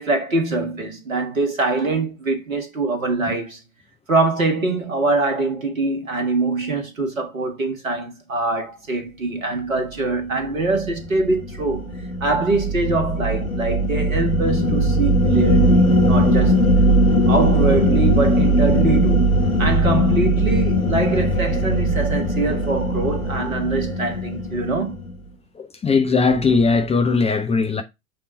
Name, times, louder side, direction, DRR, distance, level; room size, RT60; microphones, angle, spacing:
voice 1, 0.0-3.6 4.1-11.9 12.2-16.7 17.3-25.0, right 3 dB, 75° right, 1.8 m, -23 dB
sound 1, 10.6-25.1, equal, 85° left, 1.1 m, -19 dB
voice 2, 25.6-27.8, left 4 dB, 15° left, 0.8 m, -19 dB
7.7 x 3.6 x 4.1 m
figure-of-eight pair, 80°, 41 cm